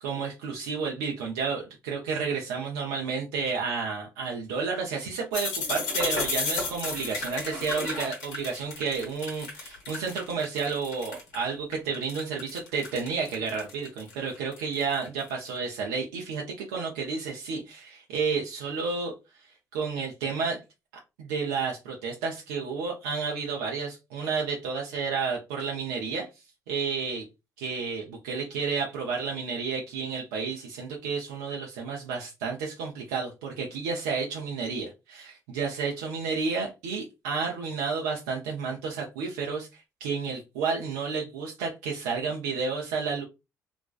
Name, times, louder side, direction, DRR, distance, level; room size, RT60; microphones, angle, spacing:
voice 1, 0.0-19.1 19.7-20.6 21.2-26.3 26.7-27.2 27.6-43.2, right 5 dB, 80° right, -1 dB, 0.5 m, -31 dB
sound 1, 5.3-11.4 11.7-15.6, left 3 dB, 80° left, 0.9 m, -33 dB
2.4 x 2.2 x 2.3 m, 0.25 s
hypercardioid pair, 50°, 9 cm